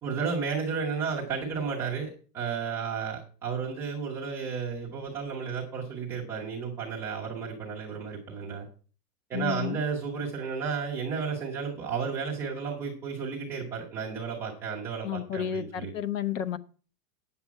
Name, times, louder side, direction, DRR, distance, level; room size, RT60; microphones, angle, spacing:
voice 1, 0.0-8.7 9.3-15.9, right 5 dB, 5° right, 0.5 m, -33 dB
voice 2, 9.3-9.8 15.0-16.6, left 9 dB, 55° left, 0.9 m, -31 dB
9.0 x 7.0 x 6.8 m
supercardioid pair, 175°, 45 cm